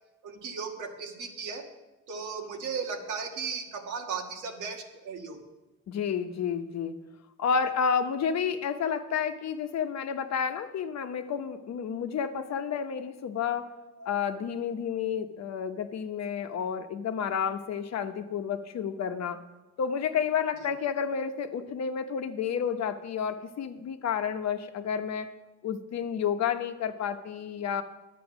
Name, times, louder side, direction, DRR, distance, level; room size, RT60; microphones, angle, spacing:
voice 1, 0.2-1.7 2.1-5.4 13.6-14.1, right 5 dB, 85° right, 3 dB, 1.6 m, -36 dB
voice 2, 5.9-6.9 7.4-13.7 14.0-19.4 19.8-25.3 25.6-27.8, left 7 dB, 60° left, 8 dB, 0.9 m, -30 dB
10.5 x 8.5 x 6.1 m, 1.1 s
cardioid pair, 90°, 30 cm